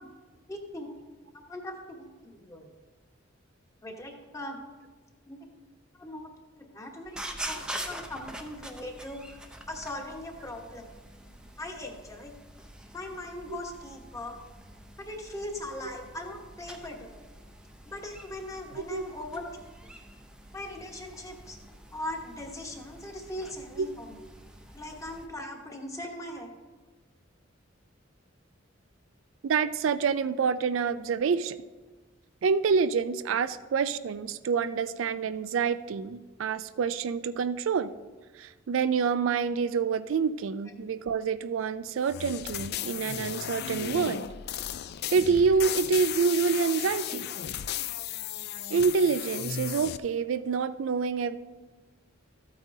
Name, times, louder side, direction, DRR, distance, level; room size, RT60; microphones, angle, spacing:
voice 1, 0.5-0.9 1.5-2.7 3.8-4.6 5.3-5.4 6.0-6.3 6.7-7.2 7.4-10.8 11.6-12.3 12.9-14.4 15.0-17.2 17.8-19.4 20.5-21.6 21.9-24.2 24.7-26.5, left 1 dB, 15° left, 2 dB, 1.2 m, -40 dB
sound 1, 7.0-25.3, right 1 dB, 5° right, 0.6 m, -45 dB
voice 2, 18.7-19.2 23.8-23.9 29.4-31.6 32.4-37.9 38.4-44.2 45.1-47.3 48.7-51.4, right 5 dB, 70° right, 13 dB, 0.4 m, -27 dB
sound 2, 42.1-50.0, left 10 dB, 55° left, 0.3 m, -35 dB
13.5 x 8.9 x 2.7 m, 1.3 s
head